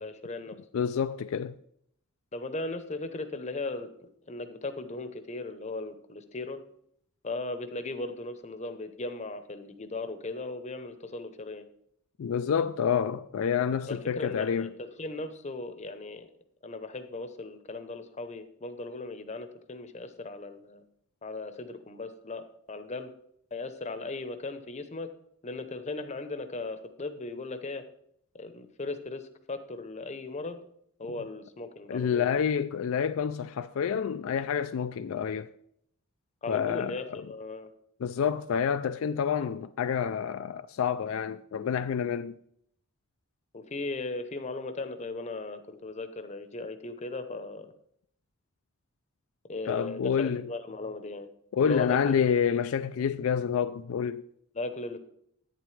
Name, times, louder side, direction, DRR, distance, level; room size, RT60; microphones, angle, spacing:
voice 1, 0.0-0.6 2.3-3.9 4.2-6.6 7.2-11.6 13.9-16.3 16.6-20.8 21.2-23.1 23.5-25.1 25.4-27.8 28.3-30.6 31.0-32.3 36.4-37.7 43.5-47.7 49.5-51.3 51.6-52.1 54.5-55.0, left 2 dB, 30° left, 0.8 m, -37 dB
voice 2, 0.7-1.6 12.2-14.7 31.9-35.5 36.5-37.3 38.0-42.4 49.7-50.4 51.5-54.3, left 7 dB, 70° left, 0.3 m, -28 dB
10.5 x 9.0 x 3.3 m
head